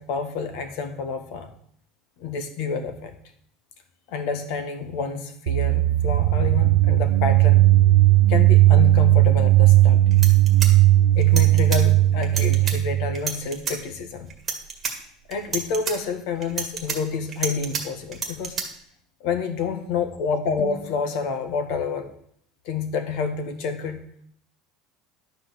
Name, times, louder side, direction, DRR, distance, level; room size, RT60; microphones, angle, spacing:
voice 1, 0.0-1.5 2.2-3.1 4.1-7.6 8.3-10.3 11.1-14.3 15.3-18.6 19.2-22.1 22.6-24.0, left 5 dB, 55° left, 8 dB, 1.5 m, -28 dB
sound 1, 5.5-13.2, right 15 dB, 75° right, 0.6 m, -17 dB
sound 2, 9.8-9.9 10.1-11.8 12.2-12.7 13.1-13.8 14.3-14.9 15.3-15.9 16.4-17.8 18.1-18.6, right 6 dB, 20° right, 1.8 m, -29 dB
11.5 x 4.9 x 7.8 m, 0.65 s
cardioid pair, 170°, 0 cm